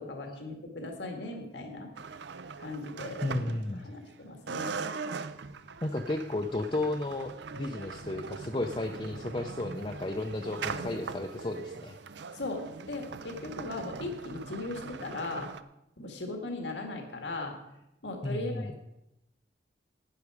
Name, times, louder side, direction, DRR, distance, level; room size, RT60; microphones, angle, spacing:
voice 1, 0.0-1.9 2.6-3.5 3.8-4.8 10.8-11.0 12.3-15.5 16.0-17.6 18.0-18.7, left 2 dB, 80° left, 3 dB, 1.8 m, -38 dB
sound 1, 1.9-4.1 4.5-15.6, right 5 dB, 75° right, 0.5 m, -41 dB
voice 2, 3.2-3.9 5.8-12.0 18.2-18.7, left 2 dB, 30° left, 3 dB, 0.6 m, -33 dB
12.0 x 9.4 x 4.8 m, 0.86 s
head